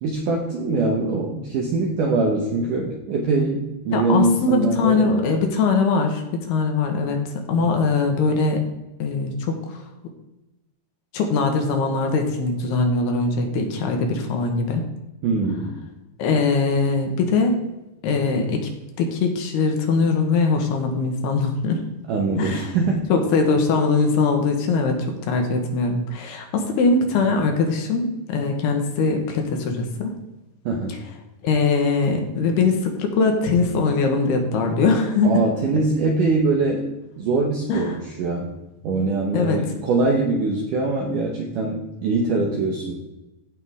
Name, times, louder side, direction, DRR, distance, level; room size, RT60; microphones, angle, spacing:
voice 1, 0.0-5.2 15.2-15.8 22.1-23.1 30.7-31.0 35.2-36.8 37.2-38.5 38.8-43.0, right 3 dB, 75° right, 0 dB, 2.0 m, -23 dB
voice 2, 3.9-7.2 7.5-8.6 9.0-9.8 11.1-14.8 16.2-17.6 18.0-18.6 19.0-21.8 22.3-22.7 23.1-25.0 25.3-30.1 31.4-35.4 37.7-38.0 39.3-39.6, left 4 dB, 70° left, 3 dB, 2.9 m, -21 dB
15.5 x 5.5 x 3.6 m, 1.0 s
omnidirectional pair, 5.1 m